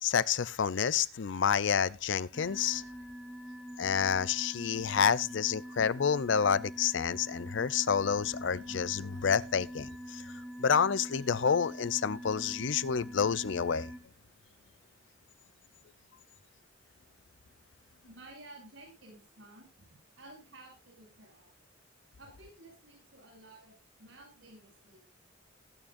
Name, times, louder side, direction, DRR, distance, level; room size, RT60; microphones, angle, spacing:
voice 1, 0.0-2.8 3.8-10.3 10.6-13.9, left 7 dB, 65° left, 0.5 m, -29 dB
sound 1, 2.3-14.0, equal, ahead, 1.4 m, -44 dB
voice 2, 18.1-21.5 22.2-25.1, right 2 dB, 85° right, 7.5 m, -54 dB
20.0 x 8.9 x 2.5 m
head